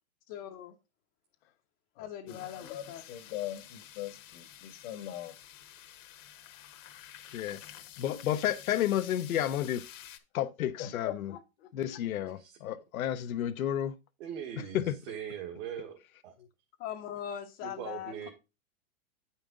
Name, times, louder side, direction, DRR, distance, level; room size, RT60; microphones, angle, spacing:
voice 1, 0.3-0.7 2.0-3.0 16.8-18.3, left 10 dB, 30° left, 0.8 m, -41 dB
voice 2, 2.0-5.4 10.8-11.7 12.2-12.3 16.4-16.5, left 12 dB, 45° left, 1.1 m, -42 dB
sound 1, 2.3-10.2, left 11 dB, 65° left, 1.3 m, -50 dB
voice 3, 8.0-9.8 10.3-11.3 11.7-14.0 14.6-15.0, left 11 dB, 80° left, 0.8 m, -31 dB
voice 4, 14.2-16.3 17.6-18.3, right 8 dB, 55° right, 1.7 m, -41 dB
9.0 x 5.6 x 3.7 m
hypercardioid pair, 150°, 41 cm